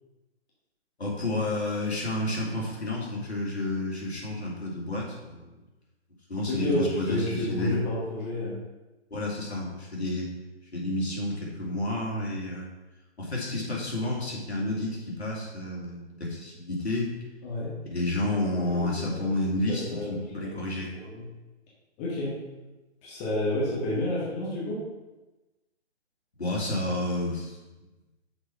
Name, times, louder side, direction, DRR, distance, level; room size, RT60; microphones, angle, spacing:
voice 1, 1.0-5.6 6.3-7.8 9.1-10.3 10.7-12.7 13.2-17.1 17.9-20.0 20.3-20.9 26.4-27.6, left 1 dB, 70° left, -4 dB, 2.8 m, -30 dB
voice 2, 6.5-8.5 17.4-17.7 18.5-21.2 22.0-22.4 23.0-24.8, left 1 dB, 20° left, -6 dB, 1.8 m, -31 dB
6.4 x 4.6 x 6.0 m, 1.1 s
figure-of-eight pair, 135°, 34 cm